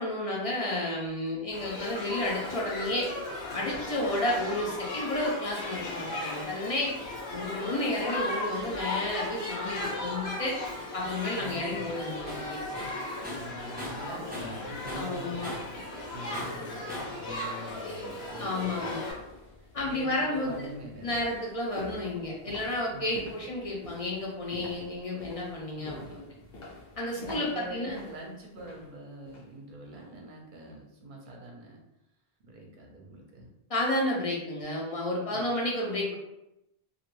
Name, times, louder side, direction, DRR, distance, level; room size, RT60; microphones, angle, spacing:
voice 1, 0.0-3.1 3.5-6.9 7.3-10.6 10.9-12.6 14.9-15.6 18.4-19.0 19.7-20.7 21.0-26.2 27.0-28.0 33.7-36.2, left 1 dB, 50° left, -3 dB, 0.5 m, -31 dB
Shout / Human group actions, 1.5-19.1, left 2 dB, 90° left, 1.0 m, -36 dB
voice 2, 11.4-11.9 13.4-15.5 16.1-19.1 19.6-21.2 22.9-23.3 25.8-26.5 27.1-31.8 32.4-33.5 35.3-35.5, right 1 dB, 60° right, 0 dB, 0.7 m, -44 dB
Tools, 12.3-12.5 12.8-14.6 14.9-15.8 16.3-17.2, left 1 dB, 15° right, 0.4 m, -40 dB
sound 1, 18.4-29.6 29.9-30.2 30.6-30.7, left 2 dB, 65° left, 0.9 m, -48 dB
2.3 x 2.1 x 3.0 m, 0.87 s
omnidirectional pair, 1.0 m